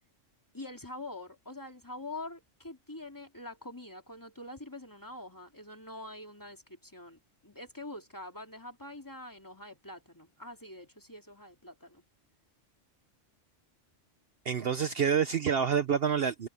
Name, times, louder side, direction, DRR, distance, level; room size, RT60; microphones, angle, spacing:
voice 1, 0.5-12.0, left 2 dB, 15° left, 2.3 m, -45 dB
voice 2, 14.4-16.5, right 7 dB, 55° right, 0.9 m, -27 dB
omnidirectional pair, 1.3 m